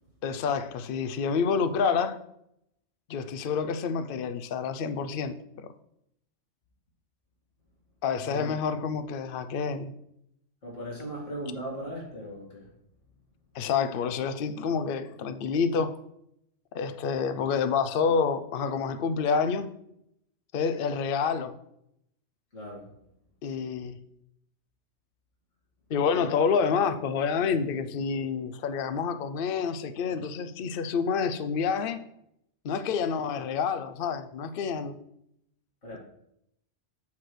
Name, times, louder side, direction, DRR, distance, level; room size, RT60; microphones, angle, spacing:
voice 1, 0.2-2.2 3.1-5.7 8.0-9.9 13.5-15.9 16.7-19.7 20.5-21.5 23.4-24.0 25.9-32.0 32.6-35.0, left 6 dB, 55° left, 0.7 m, -28 dB
voice 2, 8.2-8.6 10.6-12.7 22.5-22.9 35.8-36.0, equal, 80° left, 2.6 m, -38 dB
8.5 x 3.2 x 6.1 m
omnidirectional pair, 1.3 m